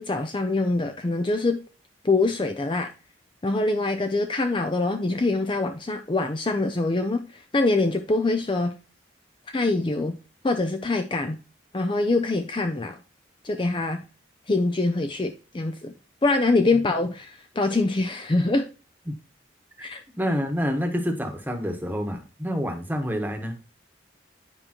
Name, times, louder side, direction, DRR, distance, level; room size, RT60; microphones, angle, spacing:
voice 1, 0.0-1.6 2.0-2.9 3.4-8.7 9.5-10.2 10.4-11.4 11.7-13.0 13.4-14.0 14.5-15.9 16.2-18.7 19.8-20.0, left 2 dB, 25° left, 0.5 m, -24 dB
voice 2, 20.2-23.6, equal, 10° right, 1.2 m, -28 dB
9.8 x 5.0 x 3.0 m
head